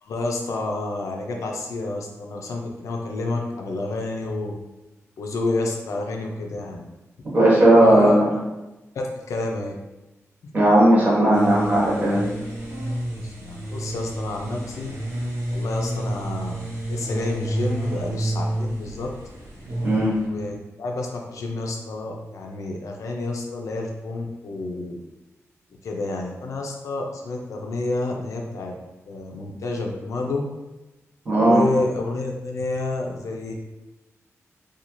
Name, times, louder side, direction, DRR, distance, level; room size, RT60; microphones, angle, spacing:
voice 1, 0.0-4.5 5.2-6.8 7.7-8.2 8.9-9.7 13.2-14.9 15.5-16.6 16.9-19.1 20.3-25.0 25.8-28.7 29.1-30.4 31.4-33.5, left 2 dB, 85° left, 1 dB, 0.4 m, -29 dB
voice 2, 7.3-8.3 10.5-12.2 19.8-20.1 31.3-31.6, right 1 dB, 30° right, -5 dB, 0.8 m, -16 dB
sound 1, 11.3-20.3, right 1 dB, 65° right, 0.8 m, -30 dB
2.6 x 2.3 x 2.9 m, 1.0 s
wide cardioid pair, 160°, 5 cm